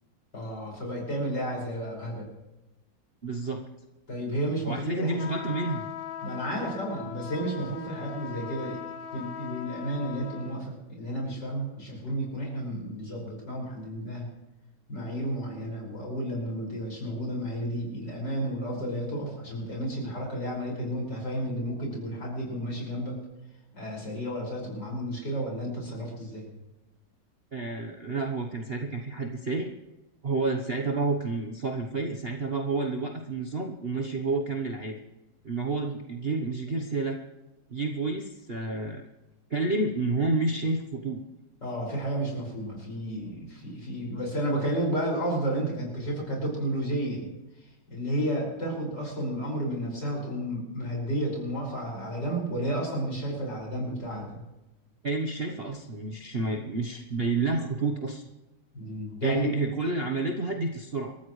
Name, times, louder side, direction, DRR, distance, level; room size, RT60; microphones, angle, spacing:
voice 1, 0.3-2.3 4.1-5.2 6.2-8.8 9.1-14.3 14.9-23.2 23.7-26.5 41.6-47.3 47.9-54.4 58.7-59.6, right 1 dB, 55° left, -2 dB, 6.5 m, -32 dB
voice 2, 3.2-3.6 4.7-5.9 27.5-29.7 30.2-35.0 35.4-37.2 37.7-39.0 39.5-41.2 55.0-58.2 59.2-61.2, right 3 dB, 40° right, 2 dB, 1.0 m, -29 dB
sound 1, 5.2-10.6, left 8 dB, 70° left, 1.6 m, -40 dB
28.0 x 14.0 x 3.2 m, 1.0 s
omnidirectional pair, 2.2 m